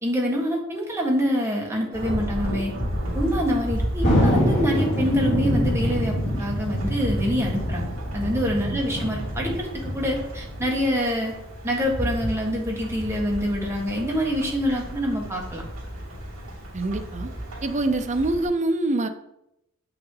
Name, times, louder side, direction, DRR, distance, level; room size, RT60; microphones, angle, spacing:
voice 1, 0.0-2.7 3.1-11.3 11.6-15.6, equal, 10° right, -2 dB, 1.5 m, -26 dB
Thunderstorm / Rain, 1.9-18.5, equal, 65° right, 2.8 m, -33 dB
Thunder, 4.0-10.9, equal, 60° left, 2.7 m, -25 dB
voice 2, 16.7-17.3 17.6-19.1, right 2 dB, 35° right, 7 dB, 0.6 m, -25 dB
7.2 x 5.8 x 3.8 m, 0.83 s
head